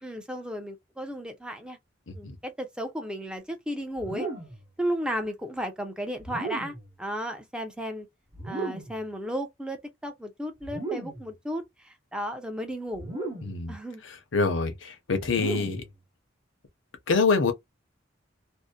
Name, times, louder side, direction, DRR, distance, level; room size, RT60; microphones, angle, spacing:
voice 1, 0.0-1.8 2.1-4.3 4.8-8.1 8.4-13.1 13.7-14.0, equal, 5° right, 0.6 m, -34 dB
sound 1, 4.0-4.7 6.2-6.9 8.3-9.1 10.6-11.3 12.9-13.7 15.2-16.0, right 3 dB, 25° right, 0.9 m, -35 dB
voice 2, 13.4-13.8 14.3-15.8 17.1-17.5, left 4 dB, 75° left, 0.7 m, -25 dB
2.6 x 2.1 x 2.2 m
head